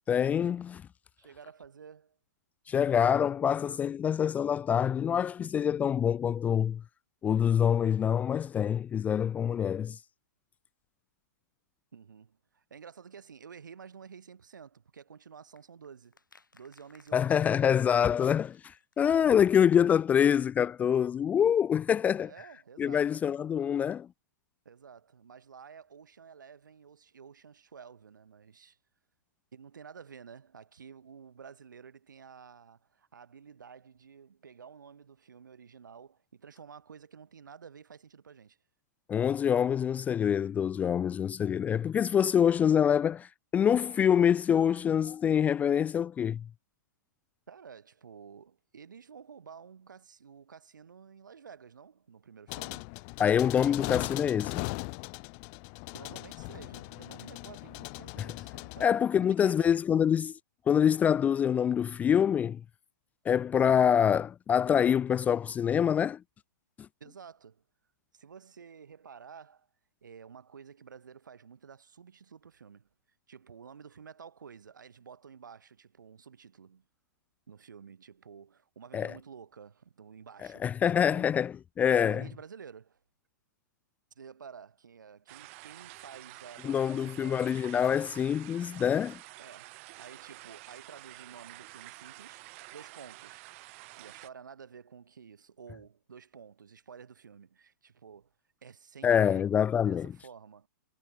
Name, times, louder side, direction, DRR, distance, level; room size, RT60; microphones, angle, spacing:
voice 1, 0.1-0.8 2.7-6.8 7.2-10.0 17.1-22.3 22.8-24.1 39.1-43.3 43.5-46.4 53.2-54.7 58.8-60.3 60.7-62.6 63.3-66.2 78.9-79.1 80.6-82.2 86.6-89.2 99.0-100.1, left 8 dB, 15° left, 0.4 m, -25 dB
voice 2, 1.2-2.2 11.9-16.2 16.5-17.7 22.2-23.2 24.6-28.8 29.5-38.6 47.5-52.9 55.9-59.8 67.0-67.6 68.1-69.7 70.0-72.9 73.3-76.9 77.5-81.3 82.0-83.0 84.2-87.6 89.4-92.5 92.7-93.5 94.0-98.3 98.6-100.7, right 6 dB, 75° right, 5.9 m, -51 dB
sound 1, 15.6-19.6 19.8-19.9 20.1-20.2, left 3 dB, 85° left, 6.4 m, -62 dB
sound 2, 52.5-58.9, left 40 dB or more, 35° left, 1.2 m, -39 dB
sound 3, 85.3-94.3, right 23 dB, 45° right, 3.9 m, -49 dB
figure-of-eight pair, 115°, 10 cm